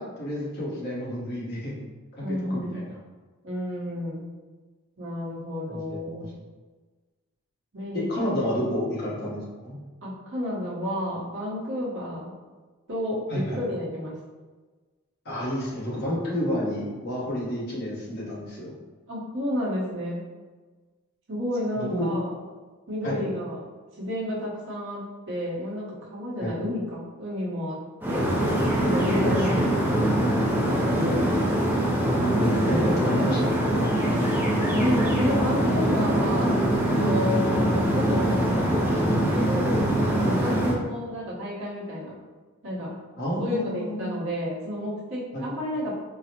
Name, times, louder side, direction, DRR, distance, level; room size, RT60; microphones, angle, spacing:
voice 1, 0.0-1.8 2.5-2.8 5.7-6.0 7.9-9.4 9.6-9.8 13.3-13.6 15.2-18.7 21.7-22.1 23.0-23.2 26.4-26.5 29.2-29.7 32.4-33.6 40.4-40.6 43.2-44.0 45.3-45.5, equal, 50° left, -6 dB, 1.1 m, -29 dB
voice 2, 2.2-2.8 3.4-4.3 5.0-6.3 7.7-8.6 10.0-12.3 12.9-14.2 19.1-20.2 21.3-22.3 22.9-23.6 24.0-27.8 28.1-28.3 28.8-30.1 30.6-31.4 34.7-42.2 42.6-42.9 43.4-45.9, left 1 dB, 60° right, -6 dB, 1.0 m, -31 dB
sound 1, 28.0-40.7, right 1 dB, 10° right, 0.4 m, -23 dB
3.9 x 2.0 x 2.8 m, 1.3 s
head